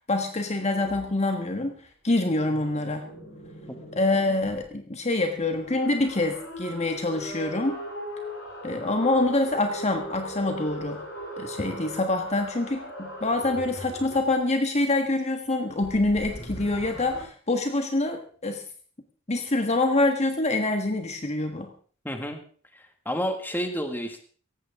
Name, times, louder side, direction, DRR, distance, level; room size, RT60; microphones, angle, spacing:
voice 1, 0.1-1.7 2.0-3.1 3.9-7.8 8.6-11.0 11.4-18.6 19.3-21.7, left 2 dB, 30° left, 5 dB, 1.4 m, -25 dB
sound 1, 0.7-1.1 2.2-4.7 5.4-14.4 15.8-17.2, equal, 70° left, 7.3 m, -39 dB
voice 2, 22.0-22.4 22.7-24.2, equal, 10° left, 5 dB, 1.9 m, -30 dB
17.5 x 15.5 x 3.7 m, 0.43 s
head